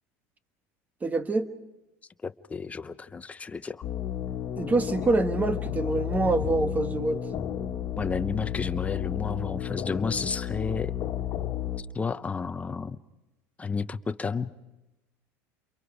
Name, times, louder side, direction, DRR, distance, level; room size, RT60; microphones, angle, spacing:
voice 1, 1.0-1.5 4.6-7.2, right 2 dB, 20° right, 10 dB, 1.3 m, -26 dB
voice 2, 2.2-3.8 8.0-11.0 11.8-13.0 13.6-14.5, left 5 dB, 15° left, 11 dB, 0.7 m, -32 dB
sound 1, 3.8-11.8, left 11 dB, 45° left, 1.8 m, -32 dB
28.5 x 23.0 x 5.0 m, 1.0 s
supercardioid pair, 105°, 8 cm